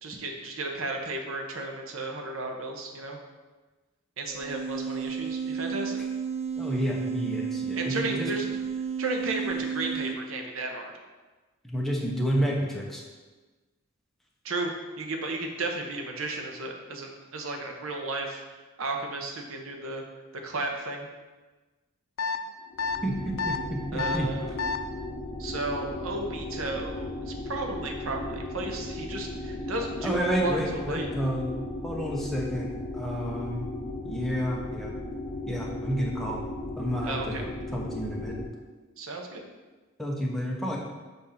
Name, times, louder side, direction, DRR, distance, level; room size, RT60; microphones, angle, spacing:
voice 1, 0.0-3.2 4.2-6.0 7.7-8.6 9.0-10.9 14.4-14.7 15.0-18.4 18.8-20.0 20.4-21.1 23.9-24.6 25.4-31.1 37.0-37.4 39.0-39.4, right 2 dB, 85° right, 2 dB, 0.8 m, -33 dB
sound 1, 4.3-10.2, right 6 dB, 30° right, 0.3 m, -32 dB
voice 2, 6.6-8.3 11.6-13.0 23.0-24.3 30.0-31.5 31.8-33.7 34.0-34.9 35.5-36.4 36.8-37.5 37.7-38.4 40.0-40.8, equal, ahead, -3 dB, 0.8 m, -30 dB
sound 2, 22.2-22.4 22.8-23.0 23.4-23.6 24.0-24.2 24.6-24.8, left 4 dB, 90° left, 0.5 m, -28 dB
sound 3, 22.6-38.5, left 2 dB, 45° left, 0.7 m, -36 dB
6.9 x 2.6 x 5.6 m, 1.3 s
head